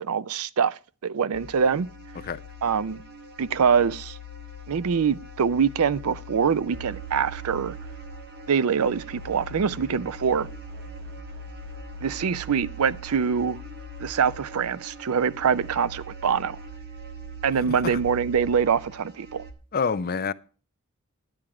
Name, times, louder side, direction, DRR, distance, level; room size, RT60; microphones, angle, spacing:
voice 1, 0.0-1.9 2.6-3.0 3.4-4.2 4.7-7.7 8.5-10.5 12.0-13.6 14.0-16.6 17.4-19.4, right 6 dB, 80° right, 0.5 m, -24 dB
sound 1, 1.3-19.5, right 2 dB, 50° right, 1.4 m, -41 dB
voice 2, 17.7-18.0 19.7-20.3, left 5 dB, 45° left, 0.5 m, -27 dB
10.5 x 8.9 x 4.8 m
head